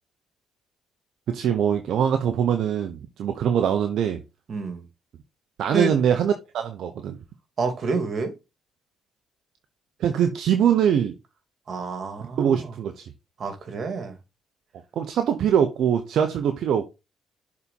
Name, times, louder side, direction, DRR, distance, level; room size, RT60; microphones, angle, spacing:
voice 1, 1.3-4.2 5.6-7.2 10.0-11.2 12.4-13.1 15.0-16.9, right 8 dB, 70° right, 0.8 m, -23 dB
voice 2, 4.5-4.8 5.7-5.9 7.6-8.3 11.7-12.7 13.4-14.1, right 4 dB, 50° right, 2.2 m, -28 dB
6.8 x 4.2 x 4.2 m
supercardioid pair, 65°, 0 cm